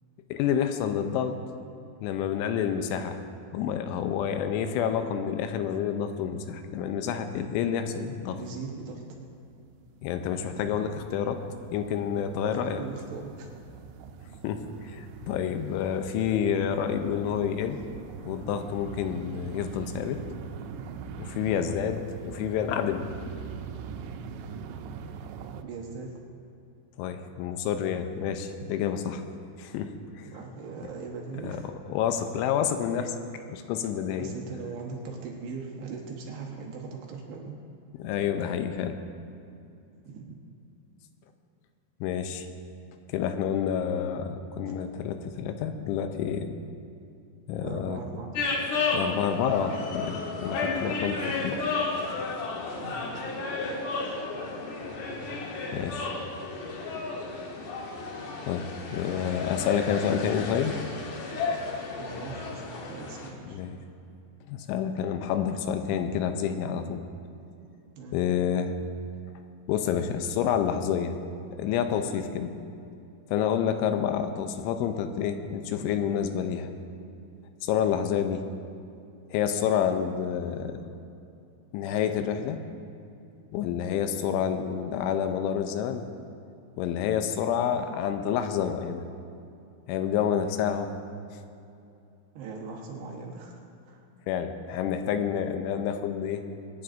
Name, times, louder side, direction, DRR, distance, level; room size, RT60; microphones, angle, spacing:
voice 1, 0.3-1.4 2.0-3.2 3.5-8.4 10.0-11.4 11.7-12.8 14.4-17.8 18.3-20.2 21.2-23.1 27.0-29.2 29.6-29.9 30.2-30.3 31.4-31.6 31.9-33.1 33.5-34.3 38.0-39.0 42.0-42.5 43.1-46.6 47.5-48.0 48.9-51.6 55.7-56.1 58.4-60.8 63.5-63.8 64.5-67.0 68.1-68.8 69.7-71.1 71.6-72.5 73.3-76.7 77.6-78.4 79.3-80.8 81.7-82.6 83.5-86.0 86.8-89.1 89.9-90.9 94.3-96.4, left 8 dB, 90° left, 7 dB, 3.0 m, -28 dB
voice 2, 8.3-9.0 10.5-10.6 12.4-13.5 25.6-26.2 30.3-31.7 34.2-37.6 40.1-40.4 47.6-48.5 52.7-53.0 62.0-63.6 68.0-68.2 77.8-78.0 92.3-93.6 93.9-94.0, right 4 dB, 70° right, -1 dB, 2.9 m, -40 dB
sound 1, 8.6-8.8 9.1-25.6, right 6 dB, 90° right, 3.1 m, -43 dB
sound 2, 48.3-63.3, left 3 dB, 70° left, 2.0 m, -33 dB
24.0 x 10.0 x 2.6 m, 2.6 s
omnidirectional pair, 5.5 m